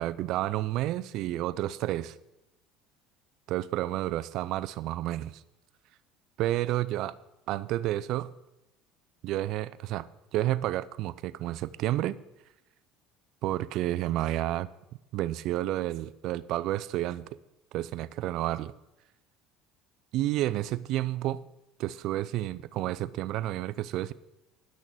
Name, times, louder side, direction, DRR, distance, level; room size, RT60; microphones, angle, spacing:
voice 1, 0.0-2.1 3.5-5.4 6.4-7.1 7.5-8.3 9.2-12.2 13.4-14.7 15.1-17.2 17.7-18.7 20.1-21.4 21.8-24.1, right 14 dB, 65° right, 15 dB, 0.5 m, -30 dB
10.5 x 6.4 x 7.6 m, 0.91 s
supercardioid pair, 105°, 0 cm